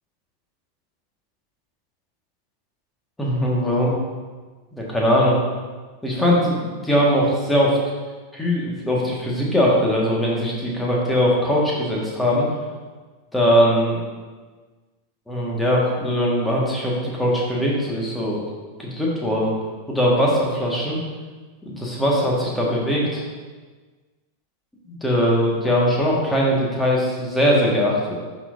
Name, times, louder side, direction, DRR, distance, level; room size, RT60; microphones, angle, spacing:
voice 1, 3.2-3.9 4.7-5.4 6.0-7.8 8.3-12.5 13.3-14.0 15.3-18.4 18.8-19.5 19.9-21.0 21.6-23.2 24.9-28.2, equal, 5° left, -4 dB, 1.6 m, -20 dB
10.5 x 4.3 x 2.6 m, 1.4 s
figure-of-eight pair, 90°, 0 cm